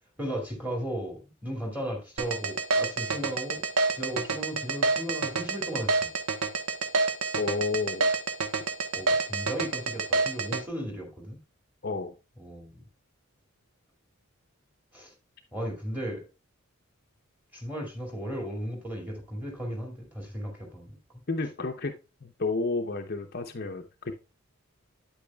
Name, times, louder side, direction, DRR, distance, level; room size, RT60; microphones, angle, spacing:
voice 1, 0.2-5.9 8.9-11.4 12.4-12.8 14.9-15.1 15.5-16.2 17.5-20.9, equal, 10° right, 2.3 m, -35 dB
sound 1, 2.2-10.6, right 3 dB, 90° right, 1.0 m, -27 dB
voice 2, 7.4-8.1 11.8-12.1 21.3-21.9 22.2-24.1, left 3 dB, 45° left, 0.7 m, -31 dB
8.7 x 8.7 x 2.3 m
head